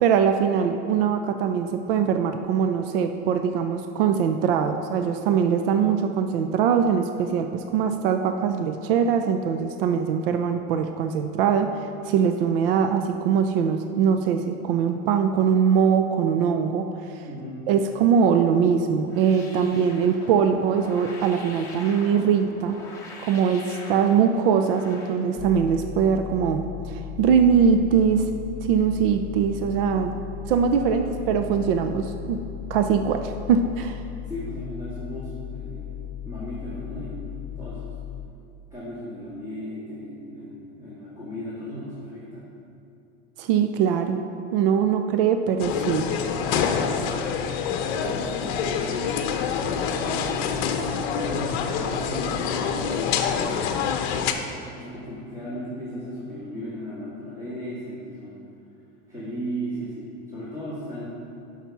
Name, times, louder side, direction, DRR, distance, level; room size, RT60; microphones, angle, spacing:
voice 1, 0.0-11.7 12.1-16.9 17.7-22.8 23.2-28.2 28.7-30.1 30.5-32.4 32.7-34.0 43.4-44.2 44.5-46.1, right 7 dB, 60° right, 7 dB, 0.6 m, -22 dB
voice 2, 17.2-17.6 30.7-31.3 34.3-37.9 38.7-42.5 47.9-49.4 50.7-53.7 54.6-58.4 59.1-61.1, equal, 10° right, -11 dB, 1.9 m, -36 dB
sound 1, 19.1-25.2, left 2 dB, 10° left, 1.2 m, -42 dB
sound 2, 25.4-38.3, left 11 dB, 85° left, 0.7 m, -36 dB
sound 3, 45.6-54.3, left 6 dB, 50° left, 0.8 m, -26 dB
11.5 x 5.8 x 5.9 m, 2.6 s
supercardioid pair, 170°, 32 cm